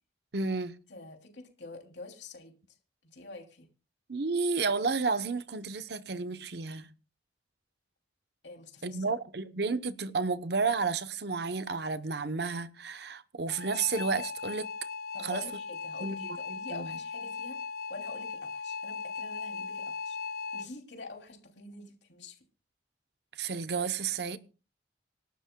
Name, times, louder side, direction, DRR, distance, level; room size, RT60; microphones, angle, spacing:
voice 1, 0.3-0.8 4.1-6.9 8.8-14.7 15.2-15.4 16.0-16.9 23.3-24.4, right 4 dB, 60° right, 0.9 m, -32 dB
voice 2, 0.9-2.8 3.1-3.7 8.4-9.1 15.1-17.6 17.9-20.2 20.5-22.4, left 2 dB, 65° left, 3.0 m, -46 dB
sound 1, 13.5-20.7, left 5 dB, 50° left, 0.5 m, -38 dB
27.0 x 12.0 x 2.3 m
head